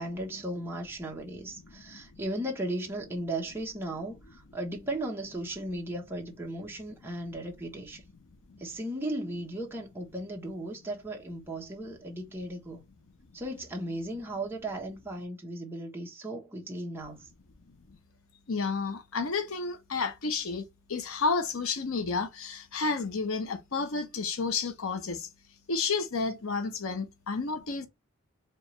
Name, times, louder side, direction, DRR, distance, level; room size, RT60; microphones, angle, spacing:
voice 1, 0.0-8.0 8.6-12.8 13.3-17.3, right 1 dB, 10° right, 1.0 m, -36 dB
voice 2, 18.5-25.3 25.7-27.9, left 4 dB, 80° left, 0.8 m, -31 dB
4.5 x 2.5 x 3.0 m
head